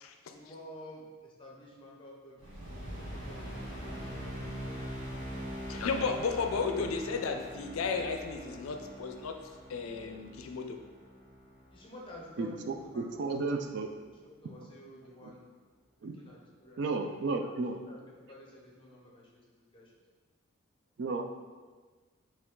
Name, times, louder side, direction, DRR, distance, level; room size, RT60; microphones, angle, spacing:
voice 1, 0.3-4.8 5.3-5.7 11.7-13.7 14.2-15.4 16.0-19.3 19.6-19.9, left 1 dB, 25° left, -3 dB, 0.6 m, -51 dB
sound 1, 2.4-12.9, equal, 30° right, 1.0 m, -43 dB
voice 2, 5.7-9.3 9.7-10.8, left 4 dB, 80° left, 5 dB, 0.4 m, -33 dB
voice 3, 12.4-13.9 15.2-15.3 16.0-16.2 16.8-17.8 21.0-21.2, right 3 dB, 55° right, 4 dB, 0.3 m, -33 dB
4.5 x 2.3 x 3.7 m, 1.4 s
head